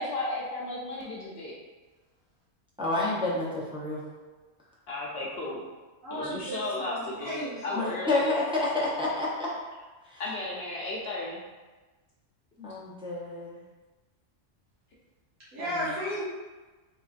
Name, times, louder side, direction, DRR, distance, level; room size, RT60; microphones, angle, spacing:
voice 1, 0.0-1.6 4.9-5.6 6.1-7.4 7.6-8.3 10.2-11.4, left 2 dB, 60° left, -5 dB, 0.8 m, -34 dB
voice 2, 2.8-4.0 7.7-9.5 10.0-10.2 12.6-13.5 15.6-15.9, left 2 dB, 5° right, -7 dB, 0.4 m, -29 dB
voice 3, 6.0-7.8 15.5-16.2, equal, 90° right, -11 dB, 1.8 m, -34 dB
3.6 x 3.4 x 2.4 m, 1.2 s
omnidirectional pair, 1.3 m